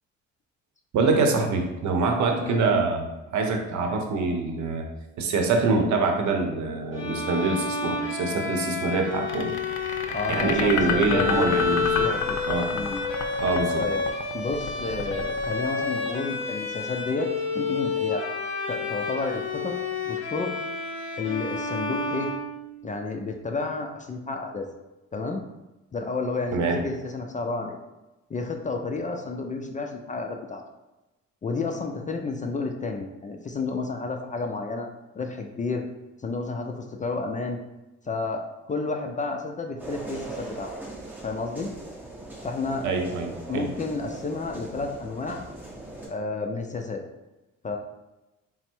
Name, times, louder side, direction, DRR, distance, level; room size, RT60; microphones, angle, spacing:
voice 1, 0.9-3.1 3.3-4.8 5.2-9.6 10.3-12.0 12.5-12.7 13.4-13.8 26.5-26.8 42.8-43.7, right 3 dB, 70° right, 4 dB, 0.7 m, -25 dB
Bowed string instrument, 6.9-22.9, left 4 dB, 40° left, 1.1 m, -30 dB
sound 1, 9.3-16.4, left 7 dB, 80° left, 0.5 m, -31 dB
voice 2, 10.1-12.4 12.7-13.0 13.8-14.0 14.3-18.3 18.7-19.8 20.0-20.5 21.2-22.3 22.8-24.7 25.1-25.4 25.9-27.8 28.3-30.6 31.4-34.9 35.2-35.8 36.2-37.6 38.1-40.7 41.2-41.7 42.4-42.9 43.5-45.4 46.1-47.0 47.6-47.8, left 3 dB, 25° left, 4 dB, 0.4 m, -31 dB
sound 2, 39.8-46.1, right 2 dB, 5° right, 1.0 m, -40 dB
4.2 x 2.0 x 4.4 m, 1.0 s
cardioid pair, 90°, 30 cm